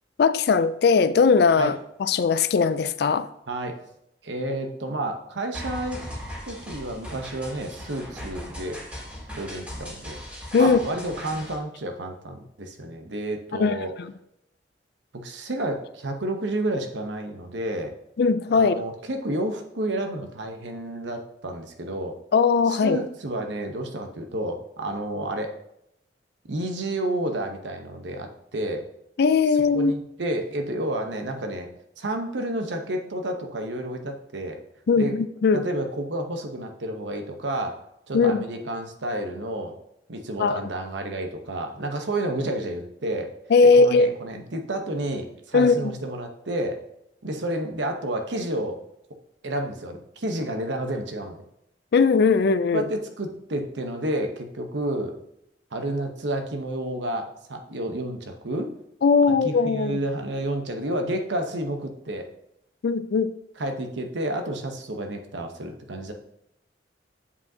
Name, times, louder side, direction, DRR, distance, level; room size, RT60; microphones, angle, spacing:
voice 1, 0.2-3.3 10.5-10.8 13.5-14.1 18.2-18.8 22.3-23.0 29.2-30.0 34.9-35.7 38.1-38.4 40.4-40.6 43.5-44.1 45.5-45.9 51.9-52.9 59.0-60.0 62.8-63.3, left 4 dB, 60° left, 13 dB, 0.4 m, -19 dB
voice 2, 3.5-3.8 4.2-6.0 6.4-8.8 9.3-10.2 10.6-13.9 15.1-17.9 18.5-22.2 22.7-25.5 26.5-28.8 29.7-31.7 32.0-34.6 34.9-35.1 35.5-37.8 38.1-39.8 40.1-43.3 43.7-46.8 47.2-48.8 49.4-51.4 52.7-55.2 55.7-58.7 59.4-62.3 63.6-66.1, right 1 dB, 75° right, 4 dB, 0.9 m, -30 dB
sound 1, 5.5-11.5, equal, 5° right, 2.2 m, -38 dB
8.4 x 5.1 x 2.8 m, 0.79 s
head